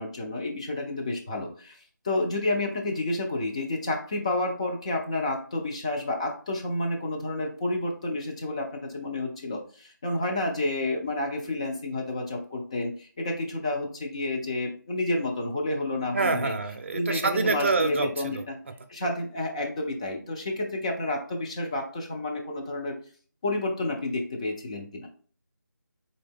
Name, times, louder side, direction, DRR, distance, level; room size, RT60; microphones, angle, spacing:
voice 1, 0.0-1.8 2.0-16.6 16.9-18.6 18.9-23.0 23.4-25.1, left 2 dB, 20° left, 1 dB, 0.5 m, -30 dB
voice 2, 16.1-18.4, right 3 dB, 40° right, 6 dB, 0.5 m, -26 dB
3.9 x 3.2 x 3.5 m, 0.42 s
figure-of-eight pair, 165°, 11 cm